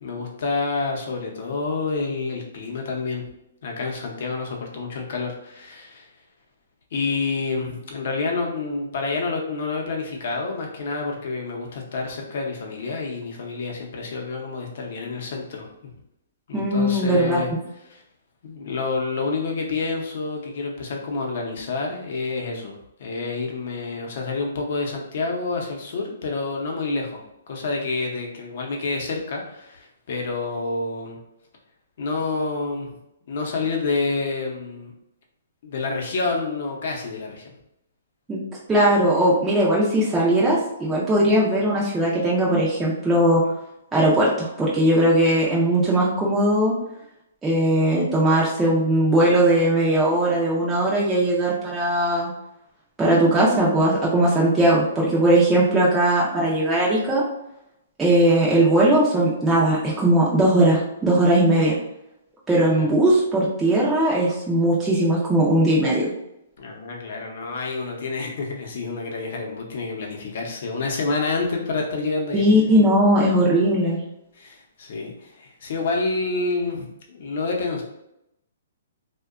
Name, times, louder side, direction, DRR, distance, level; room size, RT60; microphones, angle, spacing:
voice 1, 0.0-3.2 3.6-6.1 6.9-15.7 16.5-17.5 17.9-18.0 18.4-31.2 32.0-32.9 33.3-34.9 35.6-37.5 62.8-62.9 66.6-72.4 74.3-77.8, left 3 dB, 55° left, 1 dB, 0.6 m, -28 dB
voice 2, 16.5-17.4 38.3-38.4 38.7-43.4 43.9-46.7 47.4-52.3 53.0-57.2 58.0-61.7 62.5-66.1 72.3-74.0, right 1 dB, 10° right, -6 dB, 0.4 m, -19 dB
2.7 x 2.1 x 2.4 m, 0.83 s
hypercardioid pair, 160°, 0 cm